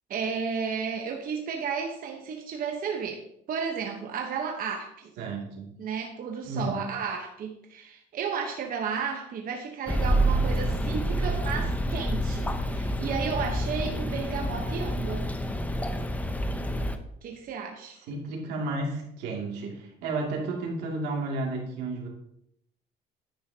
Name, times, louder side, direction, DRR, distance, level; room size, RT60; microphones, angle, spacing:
voice 1, 0.1-3.2 3.5-5.1 5.8-15.3 17.2-18.0, right 6 dB, 55° right, 2 dB, 1.0 m, -33 dB
voice 2, 5.2-5.7 6.4-6.8 18.1-22.1, right 2 dB, 90° right, -1 dB, 2.5 m, -32 dB
sound 1, 9.9-17.0, right 1 dB, 10° left, 0.8 m, -28 dB
10.0 x 9.5 x 2.8 m, 0.75 s
cardioid pair, 110°, 17 cm